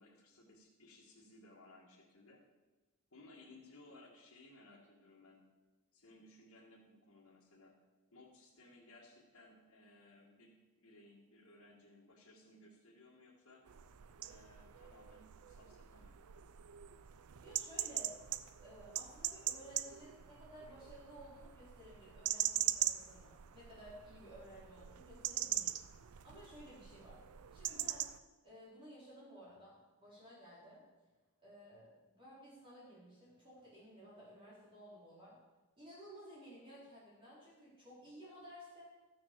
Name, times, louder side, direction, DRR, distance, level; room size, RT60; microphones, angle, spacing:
voice 1, 0.0-2.4 3.1-5.4 5.9-7.8 8.1-13.6 14.2-16.2, left 2 dB, 65° left, -6 dB, 2.1 m, -61 dB
sound 1, 13.7-28.2, right 12 dB, 85° right, 0.5 m, -42 dB
voice 2, 17.4-18.2 18.6-25.8 26.2-27.2 27.5-28.1 28.4-30.8 31.4-35.4 35.8-38.8, equal, 25° right, -8 dB, 4.2 m, -55 dB
13.5 x 6.9 x 6.9 m, 1.2 s
head